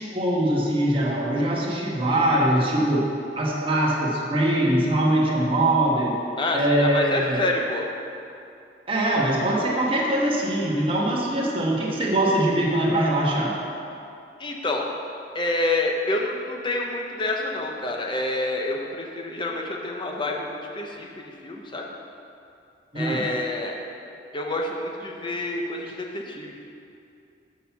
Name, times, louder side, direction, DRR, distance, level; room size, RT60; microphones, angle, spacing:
voice 1, 0.0-3.1 3.3-6.2 6.5-7.4 8.9-13.6 22.9-23.3, right 1 dB, 30° right, -3 dB, 1.2 m, -22 dB
voice 2, 6.4-7.8 14.4-14.8 15.3-21.9 22.9-23.7 24.3-26.6, left 2 dB, 30° left, 0 dB, 0.8 m, -28 dB
6.4 x 5.8 x 5.7 m, 2.6 s
head